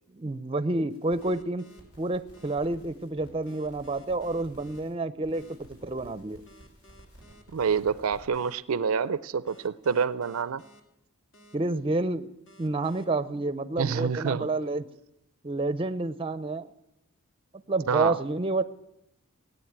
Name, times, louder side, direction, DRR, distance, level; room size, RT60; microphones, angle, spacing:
voice 1, 0.1-1.6 2.0-6.4 11.5-12.3 12.6-14.9 15.4-16.7 17.7-18.6, right 2 dB, 25° right, 0.6 m, -29 dB
sound 1, 0.9-1.3 1.7-4.9 5.2-8.3, right 1 dB, 75° left, 5.3 m, -54 dB
sound 2, 1.2-1.8 2.3-2.6 3.5-4.8 5.3-5.5 6.5-7.8 8.3-8.6 9.5-10.8 11.3-11.6 12.5-13.0, equal, 60° left, 1.9 m, -55 dB
voice 2, 7.5-10.6 13.8-14.5 17.9-18.2, right 6 dB, 70° right, 0.5 m, -27 dB
17.0 x 9.4 x 8.7 m
head